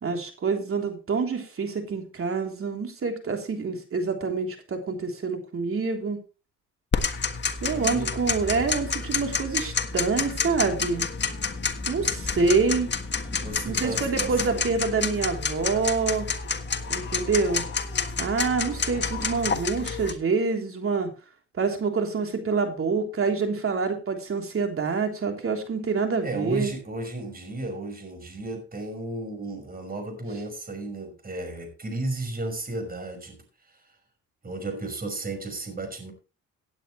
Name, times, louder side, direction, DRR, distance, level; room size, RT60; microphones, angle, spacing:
voice 1, 0.0-6.2 7.6-11.1 11.9-12.9 13.6-16.3 16.9-17.6 18.2-21.1 21.6-26.7, right 4 dB, 45° right, 3 dB, 3.4 m, -26 dB
Tick-tock, 6.9-20.1, left 5 dB, 35° left, 1.6 m, -29 dB
voice 2, 7.7-8.8 13.3-14.7 18.7-19.2 26.2-33.4 33.6-33.8 34.4-36.1, right 2 dB, 30° right, 5 dB, 5.8 m, -34 dB
17.0 x 9.0 x 3.2 m, 0.33 s
cardioid pair, 90°, 30 cm